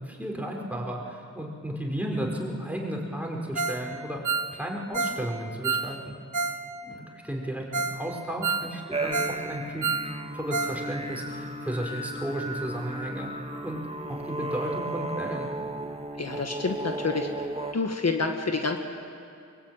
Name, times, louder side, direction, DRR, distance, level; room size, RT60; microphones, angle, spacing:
voice 1, 0.0-4.2 4.5-6.1 6.8-9.9 10.3-13.3 13.6-13.8 14.1-15.5, equal, 5° right, -1 dB, 4.9 m, -33 dB
Ringtone, 3.5-3.8 4.1-6.6 6.9-7.0 7.4-7.5 7.7-8.0 8.3-9.4 9.7-10.8 11.1-11.2 11.6-11.7, right 4 dB, 85° right, 1.2 m, -29 dB
sound 1, 8.9-17.7, right 2 dB, 20° right, 1.7 m, -35 dB
voice 2, 16.2-17.3 17.7-18.8, left 4 dB, 60° left, 3 dB, 1.7 m, -28 dB
23.0 x 20.5 x 9.1 m, 2.4 s
wide cardioid pair, 55°, 30 cm